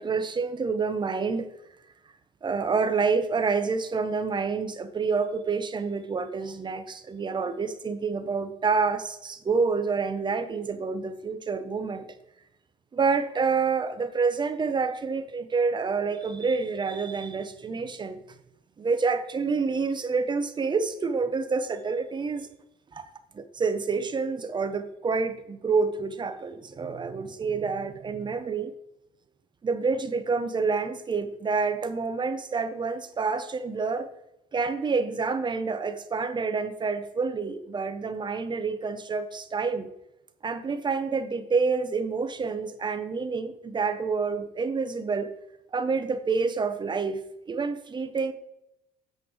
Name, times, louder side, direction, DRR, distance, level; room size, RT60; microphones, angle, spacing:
voice 1, 0.0-1.5 2.4-12.1 12.9-18.2 18.8-22.5 22.9-23.0 23.3-28.7 29.6-34.1 34.5-39.9 40.4-45.3 45.7-47.2 47.5-48.3, right 4 dB, 25° right, 11 dB, 0.6 m, -28 dB
8.5 x 3.3 x 6.1 m, 0.87 s
cardioid pair, 110°, 17 cm